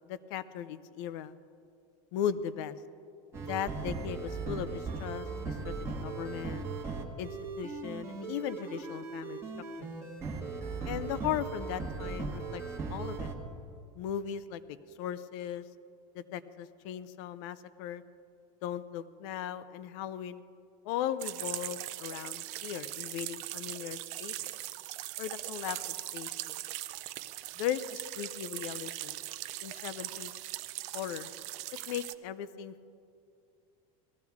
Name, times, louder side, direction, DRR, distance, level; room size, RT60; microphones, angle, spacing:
voice 1, 0.1-1.4 2.1-2.8 3.4-6.7 7.2-7.3 7.6-9.4 9.8-9.9 10.8-12.6 12.9-13.3 14.0-15.6 16.1-18.0 18.6-20.4 20.8-24.3 25.2-26.6 27.6-29.2 29.6-30.3 30.9-31.3 31.9-32.7, left 10 dB, 50° left, 15 dB, 0.6 m, -37 dB
sound 1, 3.3-13.3, right 4 dB, 15° right, 1.2 m, -38 dB
sound 2, 21.2-32.1, right 16 dB, 40° right, 0.4 m, -40 dB
18.5 x 14.0 x 3.6 m, 2.5 s
supercardioid pair, 170°, 18 cm